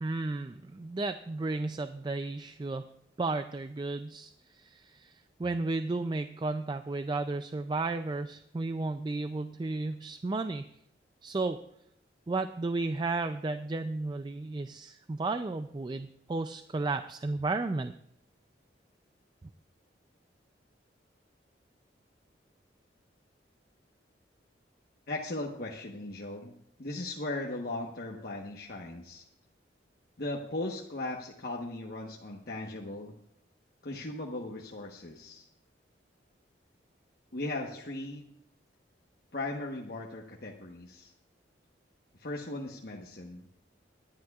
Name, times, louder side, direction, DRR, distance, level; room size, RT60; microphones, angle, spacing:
voice 1, 0.0-2.9 3.2-4.3 4.6-5.1 5.4-10.7 11.2-11.6 12.3-17.9, right 3 dB, 25° right, 9 dB, 0.3 m, -33 dB
voice 2, 25.1-26.5 26.8-29.2 30.2-33.1 33.8-35.5 37.3-38.3 39.3-41.1 42.2-43.5, left 2 dB, 55° left, -1 dB, 1.1 m, -38 dB
24.0 x 10.5 x 2.4 m, 0.76 s
head